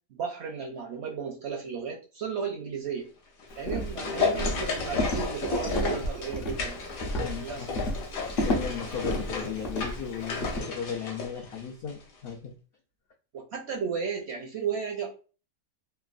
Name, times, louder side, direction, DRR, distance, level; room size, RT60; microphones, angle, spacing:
voice 1, 0.1-3.1 3.6-6.8 7.4-7.8 13.3-15.1, right 6 dB, 70° right, 2 dB, 0.6 m, -34 dB
sound 1, 3.4-12.0 12.3-12.4, left 4 dB, 70° left, 1.2 m, -33 dB
Walk footsteps, 3.6-10.6, left 1 dB, 55° left, 0.6 m, -32 dB
voice 2, 7.2-7.7 8.4-12.5, left 7 dB, 90° left, 0 dB, 0.5 m, -36 dB
3.2 x 2.1 x 2.4 m, 0.35 s
omnidirectional pair, 1.6 m